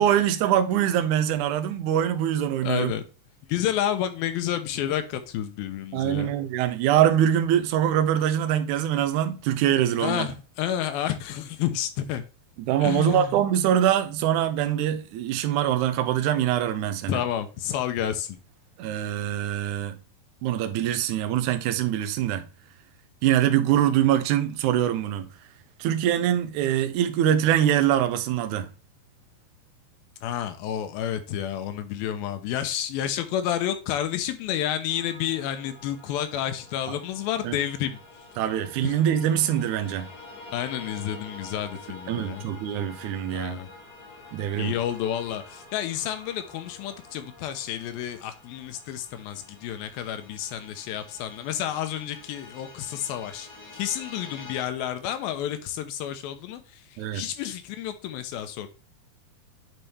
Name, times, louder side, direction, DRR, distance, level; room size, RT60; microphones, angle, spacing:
voice 1, 0.0-2.9 5.9-10.3 12.6-17.2 18.8-20.0 20.4-22.4 23.2-25.3 25.8-28.7 37.4-37.6 38.4-40.1 42.1-43.6 44.3-44.8 57.0-57.3, right 11 dB, 75° right, 1.9 m, -23 dB
voice 2, 2.6-3.0 3.5-6.3 10.0-12.2 12.8-13.4 17.1-18.4 30.2-38.0 38.8-38.9 40.5-42.4 43.3-43.7 44.6-53.5 53.7-56.6 57.1-58.7, left 10 dB, 85° left, 2.6 m, -30 dB
sound 1, 34.9-54.6, left 2 dB, 60° left, 0.9 m, -47 dB
9.2 x 4.1 x 3.3 m
omnidirectional pair, 4.2 m